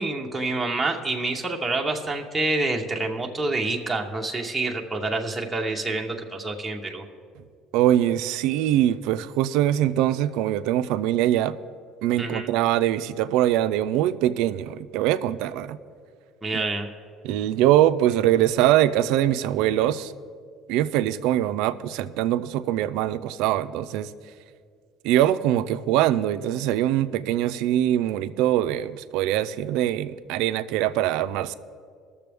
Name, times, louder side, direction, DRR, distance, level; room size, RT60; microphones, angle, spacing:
voice 1, 0.0-7.0 12.2-12.5 16.4-16.9, right 2 dB, 10° right, 0 dB, 0.8 m, -27 dB
voice 2, 7.7-11.6 12.0-15.8 16.5-16.6 17.2-20.1 20.7-24.1 25.0-31.5, right 12 dB, 80° right, 13 dB, 0.4 m, -23 dB
19.0 x 6.9 x 3.4 m, 2.1 s
cardioid pair, 130°, 0 cm